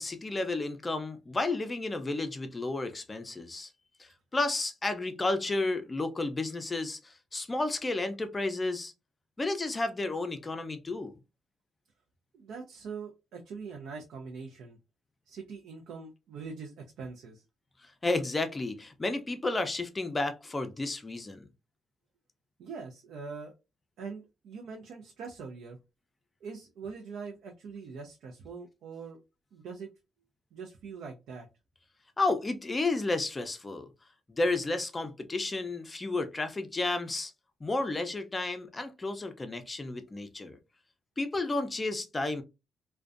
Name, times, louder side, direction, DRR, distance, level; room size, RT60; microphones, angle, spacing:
voice 1, 0.0-3.7 4.0-8.9 9.4-11.2 17.8-21.5 32.2-33.9 34.3-37.3 37.6-40.6 41.2-42.4, left 2 dB, 25° left, 0.4 m, -32 dB
voice 2, 12.3-14.8 15.3-17.4 22.6-23.5 24.0-25.8 26.4-29.2 29.5-29.9 30.5-31.5, right 5 dB, 80° right, 0.4 m, -43 dB
2.4 x 2.2 x 2.4 m
cardioid pair, 90°, 0 cm